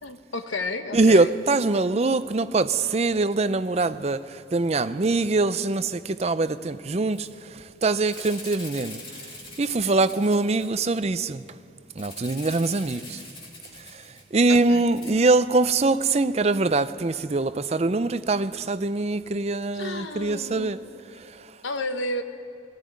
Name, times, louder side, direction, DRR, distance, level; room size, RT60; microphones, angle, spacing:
voice 1, 0.0-1.3 14.5-14.8 19.7-20.7 21.6-22.2, left 2 dB, 90° left, 1.2 m, -32 dB
voice 2, 0.9-9.0 9.6-11.4 12.0-13.2 13.9-14.0 14.3-20.8, right 3 dB, 35° right, 0.5 m, -23 dB
Rattle (instrument), 7.1-7.3 7.6-7.7 8.0-11.0 12.0-14.5 14.9-15.1, left 3 dB, 25° left, 2.7 m, -43 dB
19.0 x 15.5 x 9.5 m
head